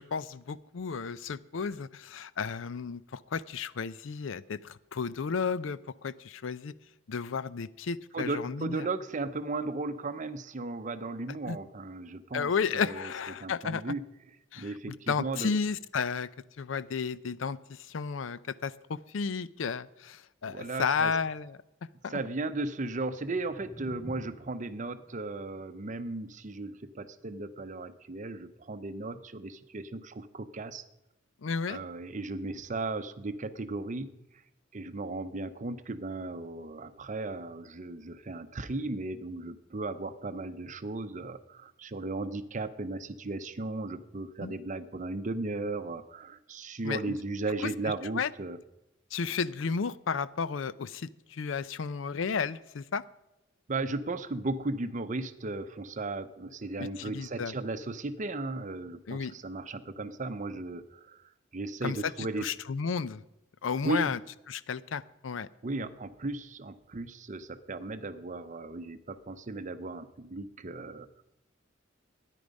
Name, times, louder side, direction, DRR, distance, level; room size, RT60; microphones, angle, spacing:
voice 1, 0.0-6.7 7.1-8.9 11.5-11.6 12.3-13.8 14.5-16.3 16.6-21.6 22.0-22.2 31.4-31.8 44.4-44.6 46.8-47.2 47.6-47.7 48.1-48.3 49.1-53.0 56.8-57.5 59.1-59.3 61.8-63.2 63.6-64.2 64.5-65.5, left 5 dB, 70° left, 17 dB, 0.5 m, -33 dB
voice 2, 8.1-13.1 13.4-14.0 14.6-15.5 20.5-21.1 22.1-30.8 31.7-34.1 34.7-48.6 53.7-61.2 61.5-62.5 63.8-64.1 65.6-71.2, right 2 dB, 40° right, 12 dB, 0.7 m, -36 dB
sound 1, 22.9-29.0, equal, 5° left, 6.1 m, -52 dB
13.0 x 10.0 x 5.2 m, 0.89 s
head